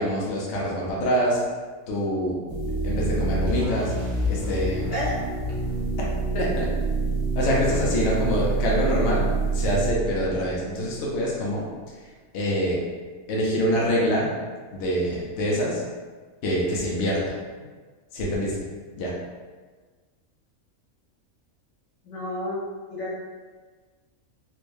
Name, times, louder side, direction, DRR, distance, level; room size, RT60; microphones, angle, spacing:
voice 1, 0.0-1.4 1.9-2.4 2.8-3.9 4.3-4.9 6.3-6.7 7.3-11.6 12.3-12.8 13.3-14.3 14.7-15.8 16.4-17.4 18.1-18.6 19.0-19.1, equal, 60° left, -5 dB, 1.0 m, -25 dB
sound 1, 2.5-11.2, right 3 dB, 70° right, 1.3 m, -27 dB
voice 2, 22.0-22.6 22.9-23.1, left 1 dB, 90° left, -7 dB, 1.7 m, -30 dB
4.3 x 2.2 x 3.2 m, 1.4 s
omnidirectional pair, 1.5 m